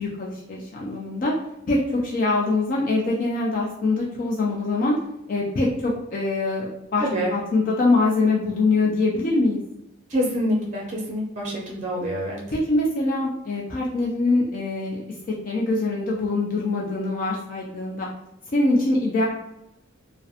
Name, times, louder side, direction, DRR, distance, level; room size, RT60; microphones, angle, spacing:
voice 1, 0.0-1.3 1.7-4.9 5.3-7.0 7.3-9.6 12.5-15.0 15.4-18.1 18.5-19.3, left 2 dB, 40° left, -4 dB, 0.3 m, -23 dB
voice 2, 7.0-7.3 10.1-12.4, equal, 35° right, -2 dB, 0.5 m, -26 dB
2.7 x 2.0 x 2.4 m, 0.87 s
head